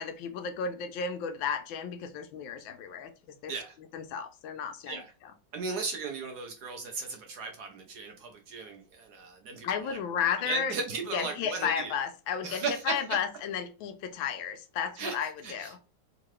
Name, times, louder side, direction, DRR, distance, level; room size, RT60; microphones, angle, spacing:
voice 1, 0.0-3.1 3.4-3.5 3.9-5.0 9.6-10.7 11.1-15.8, left 7 dB, 80° left, 1.3 m, -33 dB
voice 2, 5.5-10.0 10.4-11.9 12.4-13.0 15.0-15.1 15.4-15.8, right 4 dB, 65° right, 1.1 m, -36 dB
3.7 x 2.8 x 3.0 m
omnidirectional pair, 2.2 m